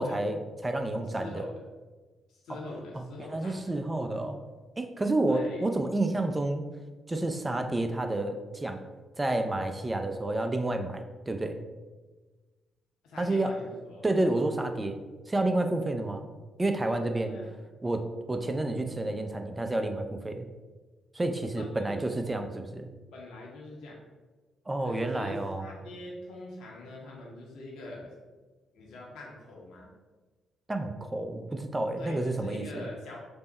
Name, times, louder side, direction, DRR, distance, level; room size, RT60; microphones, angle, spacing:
voice 1, 0.0-1.5 2.5-2.6 2.9-3.0 3.3-4.4 4.8-6.7 7.1-8.8 9.2-11.6 13.2-13.5 14.0-15.0 15.3-16.2 16.6-17.4 17.8-20.5 21.1-22.9 24.7-25.7 30.7-32.9, right 2 dB, 20° right, 6 dB, 0.4 m, -30 dB
voice 2, 1.2-1.5 2.3-3.7 5.3-5.6 13.0-14.0 17.3-17.6 21.6-22.2 23.1-24.0 24.8-28.1 28.7-29.9 32.0-33.2, left 2 dB, 70° left, -3 dB, 0.7 m, -43 dB
3.5 x 2.0 x 4.0 m, 1.3 s
hypercardioid pair, 40°, 0 cm